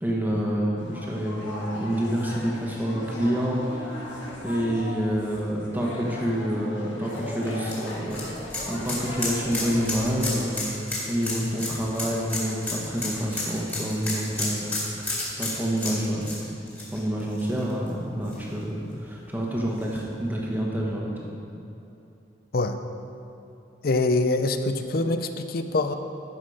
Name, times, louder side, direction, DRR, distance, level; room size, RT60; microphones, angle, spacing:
voice 1, 0.0-4.0 4.4-8.1 8.7-14.7 15.4-16.3 16.9-21.3, equal, 10° right, -3 dB, 1.4 m, -28 dB
sound 1, 0.8-10.4, left 1 dB, 85° left, 1.6 m, -38 dB
sound 2, 7.1-17.9 18.3-18.4 19.8-19.9, left 2 dB, 10° left, 2.1 m, -32 dB
voice 2, 23.8-25.9, left 2 dB, 50° left, 8 dB, 0.5 m, -24 dB
11.5 x 6.4 x 5.0 m, 2.8 s
head